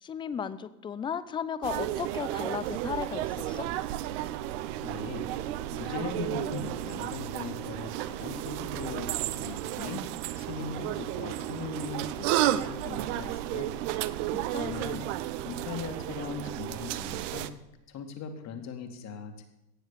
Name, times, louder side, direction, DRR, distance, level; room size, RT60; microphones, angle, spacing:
voice 1, 0.0-3.7 14.0-14.7, left 7 dB, 10° left, 15 dB, 0.4 m, -35 dB
sound 1, 1.6-17.5, right 14 dB, 50° right, 0.9 m, -33 dB
voice 2, 4.8-5.3 5.7-10.0 10.4-13.7 14.5-15.0 15.4-17.5 17.9-19.5, left 5 dB, 35° left, 6 dB, 2.3 m, -39 dB
18.0 x 7.2 x 6.9 m, 0.91 s
hypercardioid pair, 105°, 47 cm